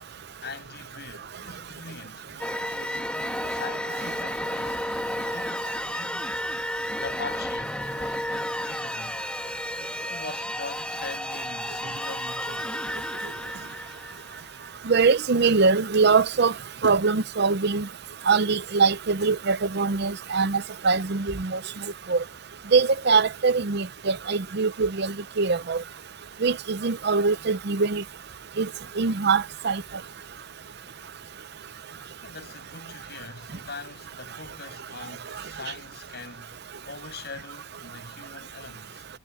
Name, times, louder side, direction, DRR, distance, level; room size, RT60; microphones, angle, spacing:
voice 1, 0.4-6.3 6.9-9.3 10.0-12.8 32.2-39.1, left 4 dB, 55° left, 7.5 m, -42 dB
sound 1, 2.4-14.9, left 1 dB, 5° left, 1.6 m, -32 dB
voice 2, 14.9-16.5 16.8-17.9 18.3-21.6 22.1-22.2 22.7-25.8 26.4-28.0 28.6-28.7 29.0-29.8, right 4 dB, 55° right, 0.7 m, -22 dB
head